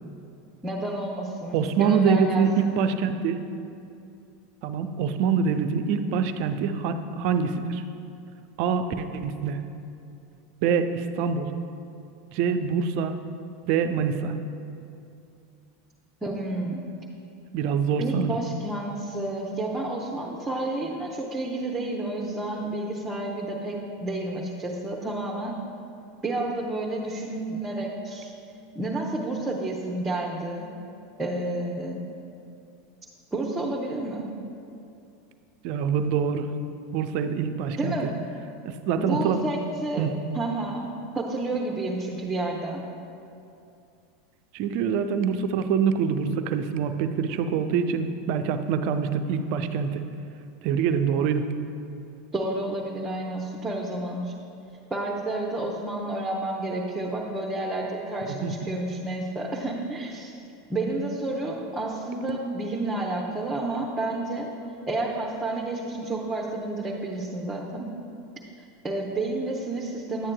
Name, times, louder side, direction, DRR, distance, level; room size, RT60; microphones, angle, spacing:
voice 1, 0.6-2.8 16.2-16.8 18.0-25.6 26.2-28.3 28.7-30.7 31.2-32.0 33.3-34.3 37.8-38.1 39.0-40.1 40.3-42.8 52.3-54.3 54.9-60.3 60.7-64.5 64.9-67.9 68.8-70.3, right 2 dB, 15° right, -2 dB, 0.8 m, -30 dB
voice 2, 1.5-3.5 4.6-7.8 8.6-9.6 10.6-11.5 12.3-13.2 13.7-14.3 17.5-18.4 35.6-36.5 36.9-38.0 38.6-39.4 40.0-40.2 44.5-50.0 50.6-51.5 58.4-58.5, right 6 dB, 55° right, 8 dB, 0.4 m, -25 dB
10.0 x 8.5 x 2.3 m, 2.6 s
figure-of-eight pair, 85°, 0 cm